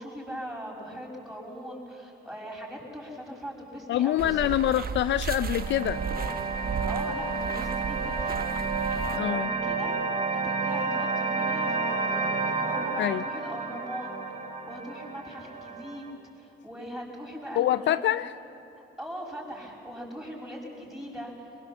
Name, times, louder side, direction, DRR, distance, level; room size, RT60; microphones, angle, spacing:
voice 1, 0.0-4.4 6.8-8.6 9.2-9.9 10.3-12.3 12.6-14.1 14.7-18.0 19.0-21.3, equal, ahead, -2 dB, 6.0 m, -40 dB
voice 2, 3.9-6.0 9.1-9.5 13.0-13.2 17.6-18.3, left 12 dB, 65° left, 15 dB, 0.4 m, -25 dB
sound 1, 4.2-9.2, right 6 dB, 50° right, 0.9 m, -35 dB
sound 2, 5.1-16.1, right 4 dB, 30° right, 3.1 m, -31 dB
22.5 x 21.0 x 7.3 m, 2.9 s
cardioid pair, 90°, 20 cm